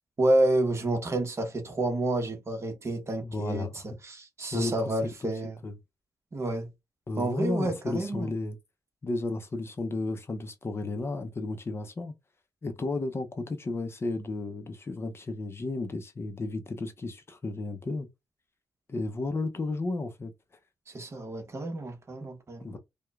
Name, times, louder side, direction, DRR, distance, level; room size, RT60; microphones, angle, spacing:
voice 1, 0.2-5.5 6.3-6.7 7.2-8.3 20.9-22.8, right 1 dB, 40° right, 1.1 m, -29 dB
voice 2, 3.2-3.8 4.5-4.9 5.6-5.7 7.1-8.6 9.0-12.1 12.6-18.1 18.9-20.3 22.6-22.8, left 2 dB, 35° left, 0.6 m, -33 dB
4.7 x 2.2 x 2.3 m
cardioid pair, 105°, 7 cm